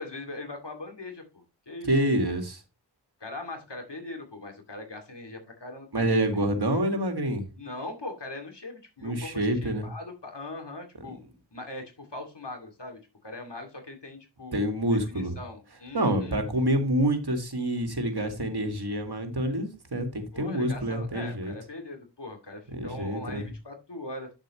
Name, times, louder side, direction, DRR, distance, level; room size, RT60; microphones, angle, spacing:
voice 1, 0.0-1.9 2.2-2.4 3.2-6.4 7.6-11.2 11.5-14.6 14.9-16.4 20.3-24.3, left 2 dB, 70° left, 4 dB, 2.5 m, -40 dB
voice 2, 1.8-2.6 5.9-7.5 9.0-9.9 14.5-15.4 15.9-21.5 22.7-23.5, right 1 dB, 60° right, 5 dB, 2.1 m, -27 dB
8.8 x 7.4 x 3.1 m, 0.28 s
wide cardioid pair, 45°, 43 cm